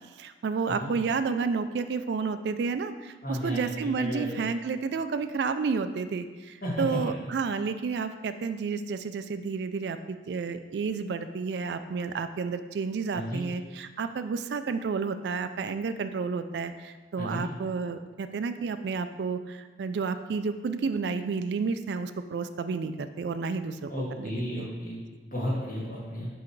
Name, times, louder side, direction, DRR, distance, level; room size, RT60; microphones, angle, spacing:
voice 1, 0.2-23.9 24.2-24.3 24.6-24.7, right 5 dB, 75° right, 10 dB, 0.3 m, -31 dB
voice 2, 3.2-3.7 4.0-4.4 6.6-7.0 13.1-13.4 17.2-17.5 23.9-26.3, equal, 50° left, -6 dB, 2.0 m, -33 dB
4.8 x 4.8 x 4.6 m, 1.3 s
head